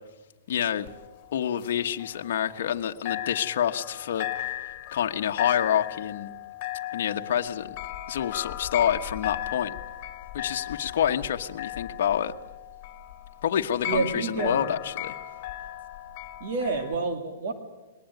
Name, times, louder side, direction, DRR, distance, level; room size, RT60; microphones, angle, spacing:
voice 1, 0.5-0.9 1.3-4.5 4.9-6.3 6.9-7.7 8.1-9.7 10.3-12.3 13.4-15.1, left 9 dB, 60° left, 5 dB, 1.2 m, -27 dB
sound 1, 0.9-2.8 3.1-17.0, left 14 dB, 35° left, 2.9 m, -36 dB
voice 2, 13.9-14.7 16.4-17.5, right 3 dB, 50° right, 5 dB, 2.4 m, -28 dB
21.5 x 19.0 x 9.2 m, 1.1 s
hypercardioid pair, 160°, 0 cm